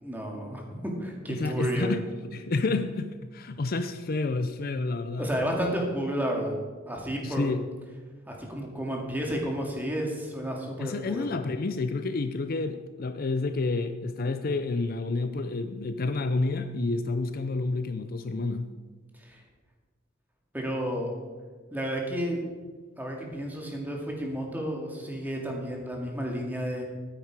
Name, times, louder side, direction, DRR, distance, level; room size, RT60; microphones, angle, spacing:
voice 1, 0.0-1.9 5.2-6.5 6.9-7.5 8.3-11.3 19.2-19.4 20.5-21.1 21.7-22.4 23.0-26.8, equal, 10° right, 0 dB, 2.1 m, -31 dB
voice 2, 1.3-5.3 7.2-7.6 10.8-18.7, left 3 dB, 50° left, 9 dB, 0.5 m, -29 dB
12.5 x 9.5 x 4.8 m, 1.4 s
head